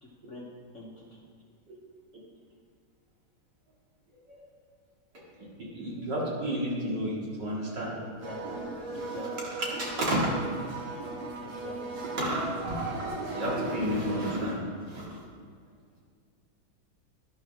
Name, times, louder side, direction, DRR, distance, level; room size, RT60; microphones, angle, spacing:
voice 1, 0.0-0.5 0.7-1.2 7.9-9.3 11.4-12.0, left 1 dB, 45° left, -3 dB, 1.2 m, -45 dB
voice 2, 5.4-7.9 8.9-9.2 9.8-10.4 12.2-15.2, equal, 60° right, -5 dB, 2.9 m, -32 dB
sound 1, 8.2-14.4, right 3 dB, 90° right, 2.0 m, -37 dB
11.5 x 11.0 x 3.5 m, 2.1 s
omnidirectional pair, 2.2 m